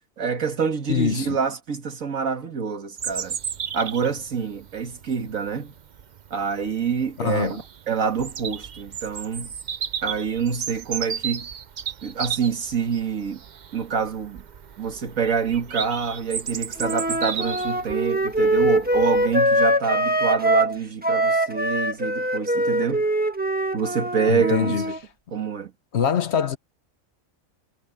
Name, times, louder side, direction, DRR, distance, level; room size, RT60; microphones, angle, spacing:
voice 1, 0.2-3.4 3.7-5.7 6.3-9.5 10.0-11.5 12.0-13.4 13.7-14.4 14.8-23.1 23.7-24.8 25.3-25.7, right 6 dB, 80° right, 2.2 m, -26 dB
voice 2, 0.9-1.4 7.2-7.6 24.3-24.9 25.9-26.6, left 7 dB, 60° left, 1.1 m, -23 dB
Bird vocalization bird call bird song, 3.0-19.4, right 8 dB, 50° right, 0.6 m, -35 dB
Wind instrument woodwind instrument, 16.8-20.8 21.0-25.0, right 1 dB, 5° right, 1.2 m, -23 dB
omnidirectional pair, 1.4 m